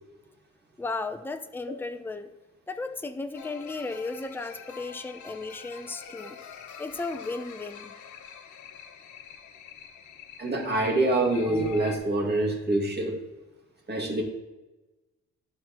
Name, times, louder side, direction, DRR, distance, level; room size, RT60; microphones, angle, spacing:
voice 1, 0.8-2.3 2.7-6.4 6.8-7.9, left 3 dB, 5° left, 8 dB, 0.6 m, -35 dB
sound 1, 3.3-12.0, left 6 dB, 75° left, 1.0 m, -44 dB
voice 2, 10.4-13.2 13.9-14.2, right 2 dB, 35° right, 0 dB, 2.2 m, -25 dB
12.5 x 4.5 x 3.0 m, 1.1 s
cardioid pair, 90°, 30 cm